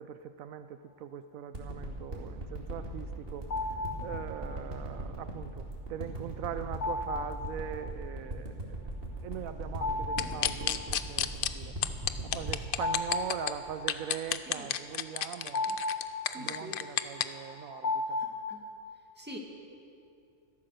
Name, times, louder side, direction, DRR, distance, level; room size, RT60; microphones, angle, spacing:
voice 1, 0.0-3.5 4.0-8.9 9.2-11.7 12.2-15.7 16.4-18.2, right 9 dB, 80° right, 11 dB, 1.0 m, -41 dB
sound 1, 1.5-14.3 14.9-15.0, right 1 dB, 45° right, 2.5 m, -39 dB
sound 2, 3.5-4.1 6.8-7.4 9.7-10.4 10.8-10.9 12.3-13.9 14.8-18.7, left 3 dB, 80° left, 2.3 m, -34 dB
sound 3, 10.2-11.5 11.8-13.5 13.9-17.2, left 9 dB, 60° left, 0.6 m, -30 dB
voice 2, 16.3-16.8 18.2-18.6 19.2-19.4, equal, 5° right, 0 dB, 2.0 m, -45 dB
15.0 x 13.5 x 6.6 m, 2.5 s
omnidirectional pair, 1.4 m